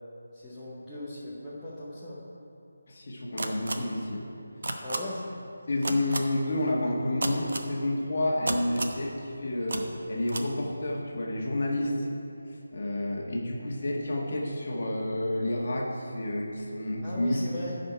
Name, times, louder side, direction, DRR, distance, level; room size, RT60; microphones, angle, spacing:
voice 1, 0.3-2.2 4.8-5.2 17.0-17.7, left 1 dB, ahead, -14 dB, 0.7 m, -38 dB
voice 2, 2.9-4.2 5.7-12.1 12.7-17.4, left 1 dB, 35° left, -2 dB, 1.4 m, -30 dB
sound 1, 3.4-3.7 4.6-5.0 5.8-6.2 7.2-7.7 8.5-9.0 9.7-9.8 10.3-10.4, right 2 dB, 50° right, 0.8 m, -30 dB
14.5 x 5.3 x 4.5 m, 2.8 s
figure-of-eight pair, 180°, 0 cm